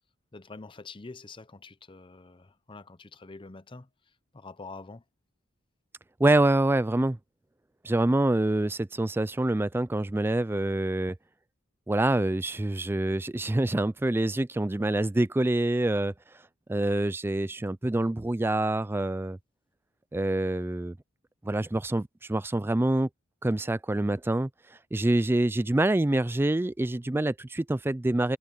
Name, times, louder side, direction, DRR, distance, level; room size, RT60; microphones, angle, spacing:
voice 1, 0.3-3.9 4.3-5.0, left 3 dB, 25° left, 0.7 m, -45 dB
voice 2, 6.2-7.2 7.8-11.2 11.9-16.1 16.7-19.4 20.1-21.0 21.4-23.1 23.4-24.5 24.9-28.4, right 1 dB, 10° right, 0.3 m, -26 dB
head